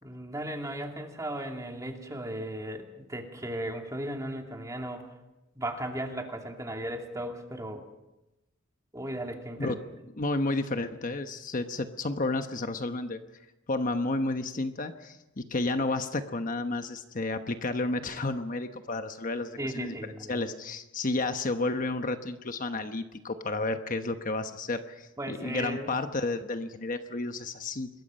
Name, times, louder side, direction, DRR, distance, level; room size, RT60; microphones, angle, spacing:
voice 1, 0.0-5.1 5.5-7.8 8.9-9.8 19.6-20.4 25.2-25.9, right 1 dB, 15° right, 2 dB, 2.7 m, -36 dB
voice 2, 10.2-13.2 13.7-19.9 20.3-27.9, left 2 dB, 40° left, 7 dB, 1.1 m, -31 dB
27.0 x 21.5 x 5.5 m, 0.97 s
head